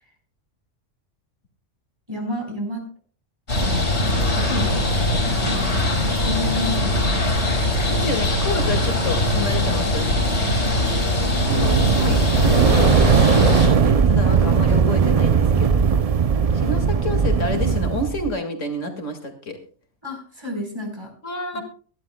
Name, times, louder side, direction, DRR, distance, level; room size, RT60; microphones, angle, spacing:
voice 1, 2.1-2.9 3.6-5.9 6.2-7.7 9.7-10.9 20.0-21.1 21.5-21.6, left 1 dB, 20° right, 2 dB, 4.2 m, -32 dB
sound 1, 3.5-13.7, left 1 dB, 60° left, 5.4 m, -21 dB
voice 2, 7.9-10.1 11.5-15.8 16.5-19.6 21.2-21.6, left 2 dB, 75° left, 4 dB, 2.4 m, -29 dB
sound 2, 11.3-18.3, right 6 dB, 45° right, 0.5 m, -18 dB
23.5 x 11.5 x 2.2 m, 0.43 s
omnidirectional pair, 1.3 m